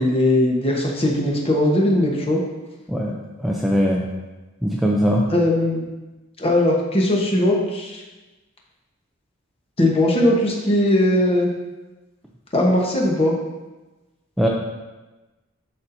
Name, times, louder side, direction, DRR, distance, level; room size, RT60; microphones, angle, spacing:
voice 1, 0.0-2.4 5.3-5.9 6.4-8.0 9.8-11.5 12.5-13.3, left 1 dB, 30° left, -1 dB, 1.1 m, -19 dB
voice 2, 3.4-4.1 4.6-5.2 14.4-14.5, equal, ahead, -3 dB, 0.5 m, -20 dB
11.0 x 4.2 x 2.7 m, 1.1 s
head